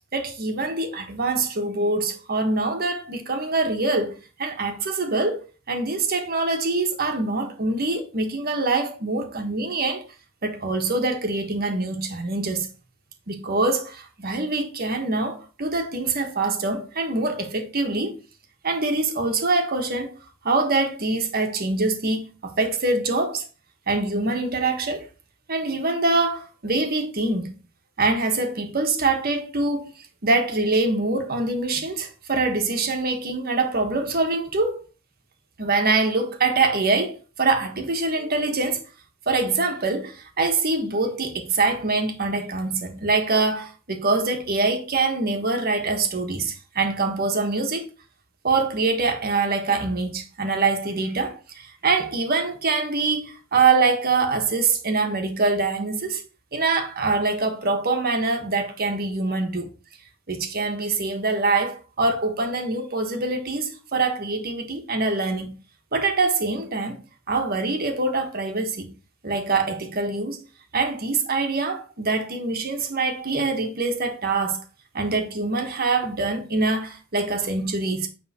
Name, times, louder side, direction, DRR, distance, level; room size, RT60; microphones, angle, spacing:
voice 1, 0.1-5.4 5.7-10.0 10.4-12.7 13.3-18.2 18.6-20.1 20.4-23.5 23.9-25.1 25.5-27.5 28.0-29.9 30.2-34.8 35.6-38.8 39.3-47.9 48.4-56.2 56.5-59.7 60.3-65.5 65.9-67.0 67.3-68.9 69.2-70.4 70.7-74.6 74.9-78.1, right 3 dB, 50° right, 1.4 m, -24 dB
9.4 x 3.6 x 4.3 m
head